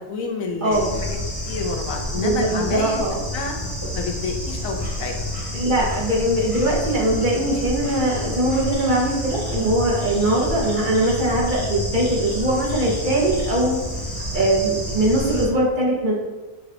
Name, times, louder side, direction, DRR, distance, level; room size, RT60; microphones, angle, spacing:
voice 1, 0.1-1.2 1.5-3.6 3.9-5.1, left 4 dB, 85° left, 3 dB, 1.1 m, -29 dB
voice 2, 0.6-1.0 2.1-3.2 5.5-13.8 14.3-16.1, right 1 dB, 40° right, -3 dB, 1.0 m, -21 dB
Bird / Insect, 0.7-15.4, left 1 dB, 20° left, 1.1 m, -29 dB
6.5 x 2.4 x 3.4 m, 1.2 s
omnidirectional pair, 1.4 m